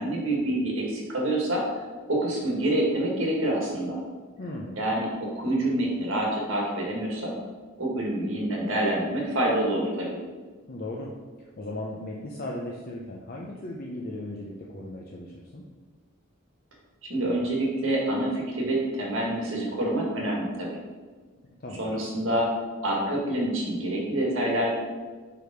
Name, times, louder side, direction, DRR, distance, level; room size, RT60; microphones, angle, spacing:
voice 1, 0.0-1.6 2.1-4.0 4.8-7.3 7.8-10.2 17.1-20.7 21.8-22.5 22.8-24.7, right 1 dB, 65° right, -2 dB, 1.6 m, -27 dB
voice 2, 4.4-4.8 10.7-11.1 11.4-15.6 21.6-22.0, left 1 dB, 45° left, -2 dB, 0.6 m, -37 dB
5.0 x 4.8 x 5.0 m, 1.4 s
head